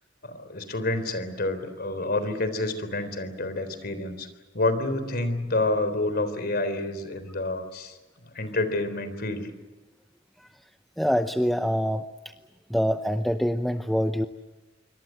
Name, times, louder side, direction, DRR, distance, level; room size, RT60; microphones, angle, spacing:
voice 1, 0.2-4.3 4.5-9.5, left 2 dB, 55° left, 11 dB, 3.8 m, -28 dB
voice 2, 11.0-12.0 12.7-14.3, equal, ahead, 7 dB, 0.8 m, -25 dB
26.5 x 24.5 x 7.7 m, 1.2 s
head